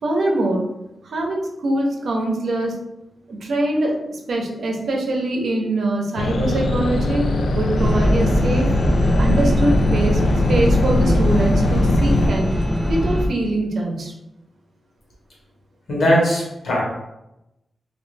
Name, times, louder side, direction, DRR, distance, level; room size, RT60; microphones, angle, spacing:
voice 1, 0.0-0.6 1.0-2.7 3.3-7.3 7.5-8.7 9.2-10.2 10.5-12.5 12.9-14.1, right 1 dB, 65° right, 0 dB, 0.7 m, -23 dB
sound 1, 6.2-12.3, left 1 dB, 85° left, 0.4 m, -20 dB
sound 2, 7.8-13.3, left 1 dB, 10° left, 0.4 m, -22 dB
voice 2, 15.9-16.8, equal, 70° left, -4 dB, 1.3 m, -19 dB
3.1 x 2.7 x 3.2 m, 0.91 s
wide cardioid pair, 180°, 0 cm